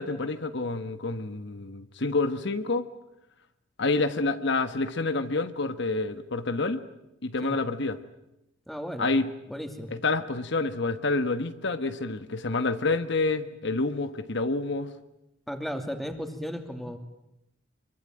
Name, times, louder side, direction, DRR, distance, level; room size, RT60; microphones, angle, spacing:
voice 1, 0.0-2.9 3.8-6.8 7.2-8.0 9.0-9.3 9.9-14.9, left 3 dB, 65° left, 1.3 m, -28 dB
voice 2, 8.7-9.1 9.5-9.9 15.5-17.0, equal, ahead, 2.7 m, -35 dB
26.0 x 23.5 x 9.0 m
head